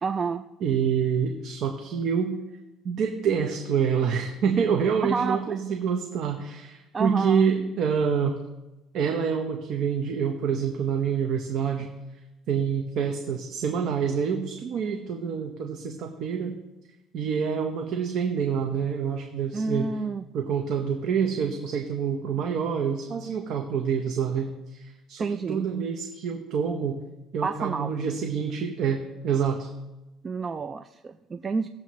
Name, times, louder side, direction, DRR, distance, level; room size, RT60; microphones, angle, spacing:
voice 1, 0.0-0.4 5.0-5.6 6.9-7.4 19.5-20.2 25.2-25.7 27.4-27.9 30.2-31.7, right 4 dB, 30° right, 9 dB, 0.4 m, -29 dB
voice 2, 0.6-2.3 2.8-8.4 8.9-11.9 12.5-16.5 17.1-19.9 20.3-27.0 27.3-29.7, right 7 dB, 60° right, 3 dB, 1.1 m, -27 dB
18.5 x 7.5 x 3.2 m, 1.0 s
cardioid pair, 100°, 0 cm